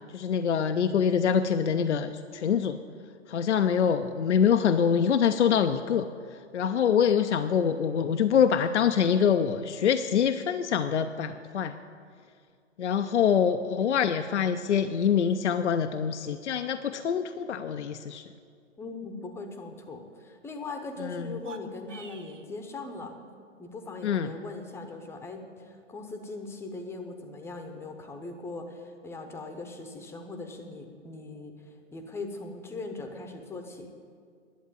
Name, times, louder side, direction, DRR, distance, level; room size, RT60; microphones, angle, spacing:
voice 1, 0.1-2.8 3.3-11.8 12.8-18.2 21.0-21.3 24.0-24.4, left 7 dB, 70° left, 8 dB, 0.6 m, -25 dB
voice 2, 18.8-23.2 23.6-33.9, left 3 dB, 5° left, 5 dB, 0.8 m, -40 dB
sound 1, 21.3-22.5, right 5 dB, 80° right, 1.0 m, -46 dB
11.0 x 8.0 x 9.1 m, 2.3 s
figure-of-eight pair, 115°, 37 cm